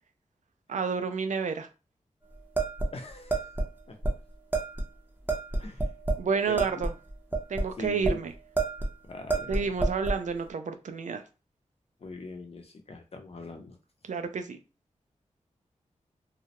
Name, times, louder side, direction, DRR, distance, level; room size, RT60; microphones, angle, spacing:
voice 1, 0.7-1.7 6.2-6.9 7.5-8.3 9.5-11.2 14.1-14.6, right 5 dB, 70° right, 8 dB, 0.4 m, -30 dB
sound 1, 2.6-3.7 4.0-4.1 4.5-4.9 5.3-6.3 6.6-8.2 8.6-8.9 9.3-10.2, right 2 dB, 15° right, 0.6 m, -29 dB
voice 2, 2.9-3.5 3.9-4.0 5.6-5.9 6.5-6.8 7.8-8.3 9.0-9.7 12.0-13.8, left 3 dB, 50° left, 4 dB, 0.6 m, -42 dB
2.3 x 2.0 x 2.8 m, 0.30 s
cardioid pair, 55°, 13 cm